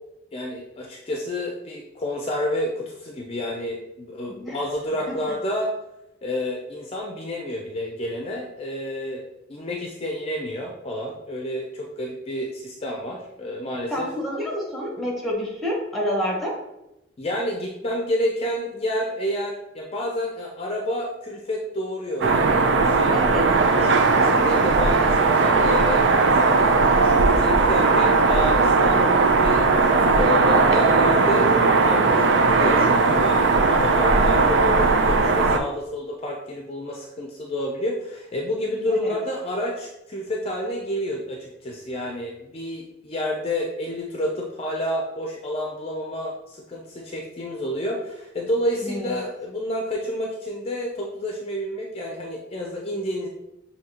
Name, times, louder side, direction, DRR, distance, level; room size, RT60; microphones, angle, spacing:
voice 1, 0.3-5.7 6.2-9.2 9.5-14.1 17.2-23.2 23.7-53.3, left 1 dB, 35° left, 0 dB, 0.5 m, -29 dB
voice 2, 13.9-16.6 23.1-23.5 38.9-39.1 48.8-49.1, equal, ahead, -3 dB, 1.1 m, -28 dB
sound 1, 22.2-35.6, right 3 dB, 85° right, 0.5 m, -18 dB
6.1 x 2.8 x 2.9 m, 0.91 s
head